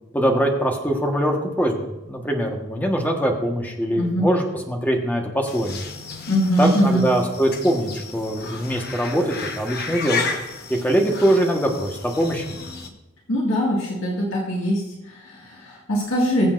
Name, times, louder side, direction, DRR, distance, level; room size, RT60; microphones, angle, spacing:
voice 1, 0.1-5.8 6.6-10.2 10.7-12.4, right 1 dB, 10° left, 1 dB, 1.3 m, -22 dB
voice 2, 4.0-4.3 6.3-7.0 13.3-16.5, equal, 85° left, -4 dB, 1.9 m, -22 dB
sound 1, 5.5-12.9, left 5 dB, 50° left, 1.1 m, -33 dB
21.5 x 7.2 x 2.6 m, 1.0 s
head